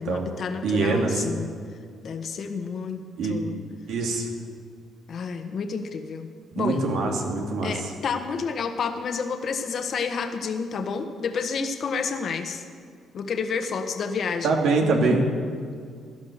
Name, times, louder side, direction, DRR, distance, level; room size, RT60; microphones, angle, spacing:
voice 1, 0.0-1.5 2.0-3.6 5.1-6.3 6.5-6.8 7.6-12.6 13.1-15.2, left 5 dB, 60° left, 6 dB, 1.4 m, -30 dB
voice 2, 0.6-1.1 3.2-3.4 3.9-4.3 6.5-7.9 14.4-15.2, right 3 dB, 80° right, 1 dB, 2.5 m, -24 dB
17.0 x 11.5 x 6.6 m, 2.1 s
cardioid pair, 90°, 0 cm